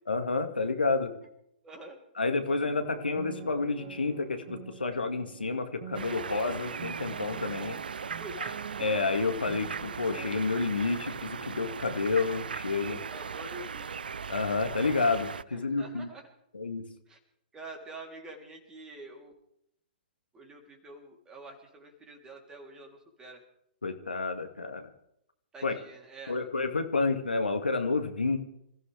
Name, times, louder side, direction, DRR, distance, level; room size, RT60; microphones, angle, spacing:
voice 1, 0.1-1.1 2.2-7.8 8.8-13.0 14.3-16.1 16.5-16.8 23.8-24.9 25.6-25.7 26.3-28.4, left 3 dB, 80° left, 6 dB, 2.2 m, -30 dB
voice 2, 1.6-2.0 8.2-8.5 13.1-13.9 15.5-16.3 17.1-17.2 17.5-19.3 20.3-23.4 25.5-26.4, right 2 dB, 15° right, 2 dB, 3.5 m, -46 dB
sound 1, 2.6-10.4, right 9 dB, 45° right, 1.6 m, -45 dB
sound 2, 5.9-15.4, right 6 dB, 70° right, 0.6 m, -38 dB
27.0 x 15.0 x 3.5 m, 0.75 s
figure-of-eight pair, 115°, 5 cm